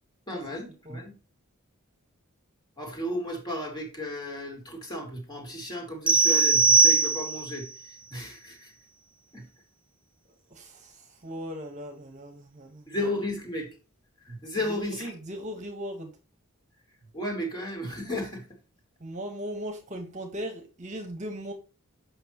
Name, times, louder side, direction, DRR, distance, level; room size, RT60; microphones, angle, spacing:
voice 1, 0.3-1.1 2.8-8.7 9.3-9.4 12.9-13.7 14.3-15.1 17.1-18.4, left 1 dB, 20° left, 1 dB, 2.6 m, -34 dB
sound 1, 6.1-7.6, right 4 dB, 5° right, 0.7 m, -20 dB
voice 2, 10.5-13.0 14.7-16.1 19.0-21.5, equal, 35° right, 4 dB, 1.3 m, -38 dB
7.9 x 5.8 x 3.0 m, 0.32 s
head